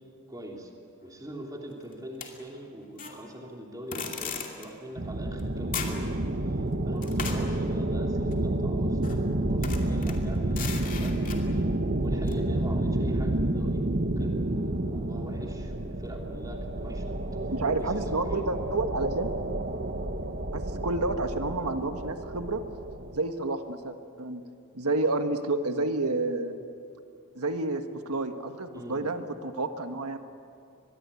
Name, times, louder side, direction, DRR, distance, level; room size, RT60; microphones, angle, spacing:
voice 1, 0.3-0.7 1.0-6.1 6.4-11.2 11.5-11.6 12.0-17.2 17.4-18.0 18.3-18.4 28.7-29.1, right 1 dB, 15° right, 0 dB, 3.1 m, -43 dB
sound 1, 2.2-3.2 3.9-4.7 5.4-5.5 5.7-6.1 7.0-8.4 9.0-9.2 9.6-11.5 12.3-12.4, left 5 dB, 35° left, 2.5 m, -37 dB
sound 2, 5.0-23.2, right 1 dB, 45° right, 1.2 m, -29 dB
voice 2, 17.5-19.3 20.5-22.6 23.1-24.4 24.7-26.5 27.3-30.2, right 2 dB, 85° right, 7 dB, 1.5 m, -30 dB
24.5 x 21.5 x 8.4 m, 2.4 s
head